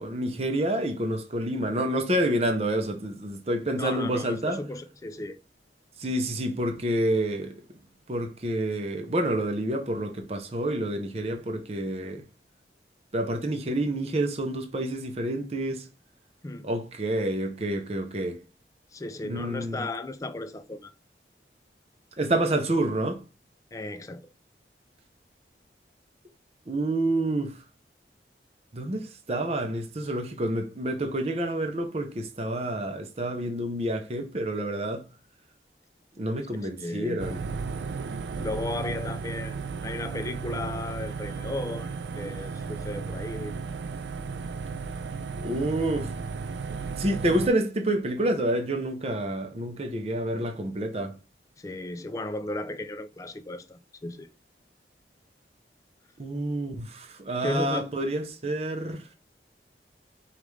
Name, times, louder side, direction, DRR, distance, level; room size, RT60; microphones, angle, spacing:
voice 1, 0.0-4.6 6.0-7.5 8.1-12.2 13.1-15.9 16.6-18.4 19.2-19.9 22.2-23.2 26.7-27.6 28.7-35.1 36.2-37.4 45.4-46.2 47.0-51.1 56.2-59.0, right 1 dB, 35° right, 0.6 m, -28 dB
voice 2, 3.8-5.4 16.4-16.7 18.9-20.9 23.7-24.2 36.6-37.2 38.4-43.5 51.6-54.3 57.4-57.9, left 2 dB, 20° left, 0.3 m, -35 dB
sound 1, 37.2-47.5, right 4 dB, 85° right, 0.4 m, -34 dB
5.2 x 2.4 x 3.1 m
head